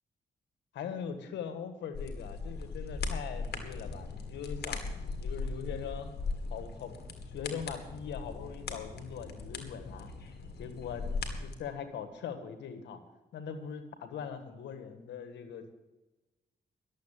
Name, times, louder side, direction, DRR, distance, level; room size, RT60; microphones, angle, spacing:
voice 1, 0.7-4.8 5.2-6.1 6.5-7.0 7.3-10.1 10.6-11.1 11.4-13.0 13.3-15.7, left 7 dB, 90° left, 8 dB, 1.6 m, -41 dB
sound 1, 1.9-11.5, left 4 dB, 65° left, 2.0 m, -39 dB
11.5 x 7.6 x 8.9 m, 1.1 s
cardioid pair, 60°, 18 cm